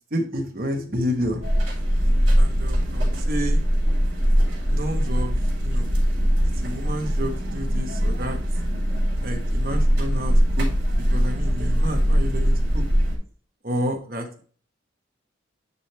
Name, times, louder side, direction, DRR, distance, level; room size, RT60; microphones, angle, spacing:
voice 1, 0.1-1.4 2.4-3.6 4.7-5.3 5.6-5.9 6.6-8.4 9.2-10.7 11.1-12.8 13.6-14.4, equal, 45° right, 3 dB, 1.2 m, -30 dB
sound 1, 1.4-13.2, equal, 65° right, 3.1 m, -21 dB
9.5 x 3.4 x 3.3 m, 0.42 s
head